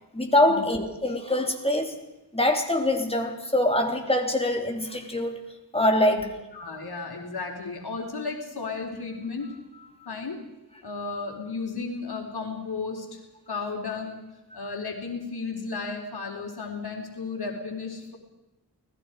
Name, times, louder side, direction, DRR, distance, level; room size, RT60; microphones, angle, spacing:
voice 1, 0.1-1.9 2.3-5.4 5.7-6.3, left 1 dB, 15° left, 3.4 m, -24 dB
voice 2, 6.5-10.4 10.8-13.2 13.5-18.2, left 4 dB, 70° left, 4.3 m, -34 dB
29.0 x 20.5 x 5.0 m
wide cardioid pair, 105°, 40 cm